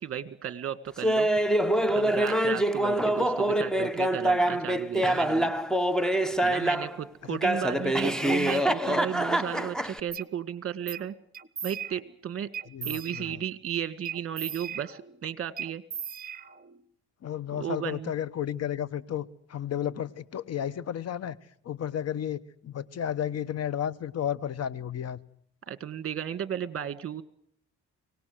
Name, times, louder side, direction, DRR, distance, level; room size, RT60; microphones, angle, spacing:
voice 1, 0.0-1.5 1.9-5.5 6.4-11.1 11.6-12.5 12.8-15.8 17.5-18.1 25.7-27.2, right 9 dB, 45° right, 15 dB, 1.8 m, -34 dB
Laughter, 1.0-7.0 7.4-10.0, right 1 dB, ahead, 1.2 m, -25 dB
sound 1, 10.1-10.3 10.9-11.1 11.3-12.2 12.5-13.5 14.0-15.2 15.6-16.8, right 8 dB, 30° right, 1.2 m, -38 dB
voice 2, 12.7-13.4 17.2-21.4 21.6-25.2, left 10 dB, 55° left, 19 dB, 1.1 m, -33 dB
24.5 x 18.5 x 7.8 m, 0.64 s
cardioid pair, 90°, 30 cm